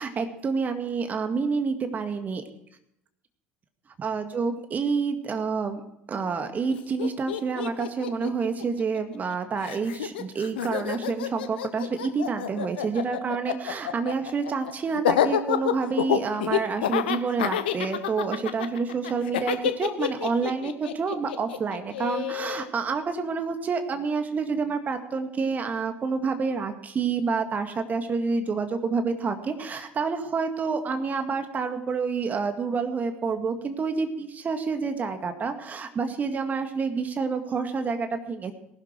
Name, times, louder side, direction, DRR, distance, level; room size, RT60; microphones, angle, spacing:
voice 1, 0.0-2.4 4.0-5.8 6.1-38.5, right 5 dB, 30° right, 7 dB, 2.0 m, -28 dB
Laughter, 6.7-6.8 7.0-9.3 9.6-22.7, left 10 dB, 70° left, 1.0 m, -28 dB
19.0 x 12.0 x 4.6 m, 0.78 s
figure-of-eight pair, 65°, 6 cm